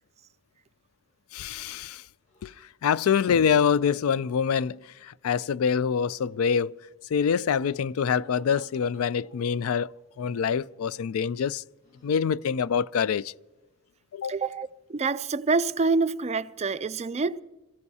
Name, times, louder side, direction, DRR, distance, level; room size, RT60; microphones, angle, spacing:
voice 1, 1.3-2.0 2.4-2.5 2.8-6.7 7.1-9.9 10.2-11.6 12.0-13.3 14.1-14.3, left 7 dB, 75° left, 0.4 m, -25 dB
sound 1, 2.3-2.5 3.8-4.7 5.8-6.4 7.7-9.5 10.2-10.6 11.8-12.3, left 3 dB, 35° left, 3.0 m, -57 dB
voice 2, 14.3-17.4, right 4 dB, 30° right, 0.4 m, -27 dB
27.0 x 15.0 x 2.8 m
head